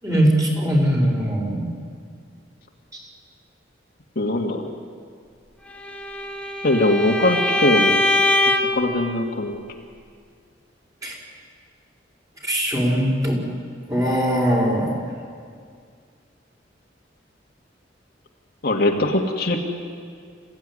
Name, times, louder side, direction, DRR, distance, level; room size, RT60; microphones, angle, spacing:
voice 1, 0.0-1.7 11.0-11.2 12.4-13.4 13.9-14.9, equal, 20° right, -2 dB, 5.3 m, -20 dB
voice 2, 4.2-4.7 6.6-8.0 8.7-9.6 18.6-19.6, left 2 dB, 55° left, 1 dB, 2.1 m, -21 dB
Bowed string instrument, 5.8-8.9, left 2 dB, 5° left, 1.6 m, -22 dB
26.5 x 15.5 x 9.8 m, 2.2 s
head